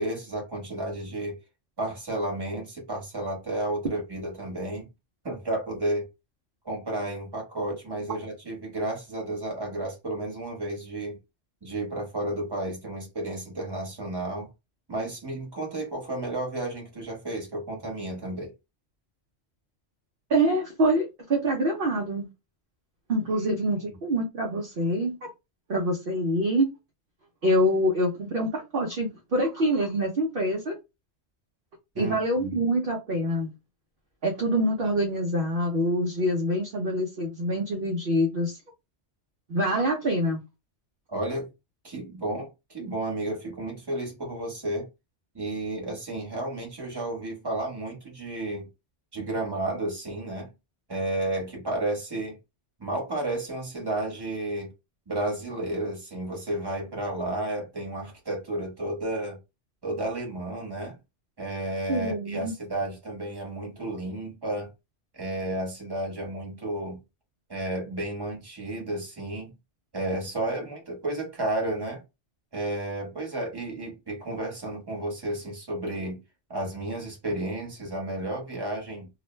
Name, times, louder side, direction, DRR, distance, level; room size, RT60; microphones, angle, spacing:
voice 1, 0.0-1.4 1.8-4.9 5.2-6.1 6.6-11.2 11.6-14.5 14.9-18.5 31.9-32.7 41.1-41.5 41.8-44.9 45.3-48.7 49.1-50.5 50.9-52.4 52.8-54.7 55.1-59.4 59.8-61.0 61.4-64.7 65.1-67.0 67.5-69.5 69.9-72.0 72.5-76.2 76.5-79.1, right 1 dB, 20° right, 1.0 m, -32 dB
voice 2, 20.3-22.3 23.1-25.3 25.7-26.7 27.4-30.7 32.0-33.5 34.2-38.6 39.5-40.4 61.9-62.5, equal, 55° right, 0.7 m, -25 dB
2.4 x 2.1 x 3.0 m
omnidirectional pair, 1.2 m